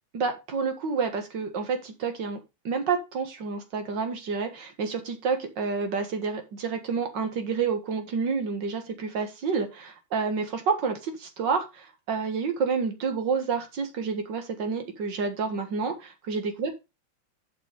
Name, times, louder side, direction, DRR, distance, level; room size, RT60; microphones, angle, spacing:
voice 1, 0.1-2.4 2.6-16.7, right 5 dB, 65° right, 6 dB, 2.3 m, -29 dB
7.8 x 6.0 x 5.2 m, 0.26 s
omnidirectional pair, 2.1 m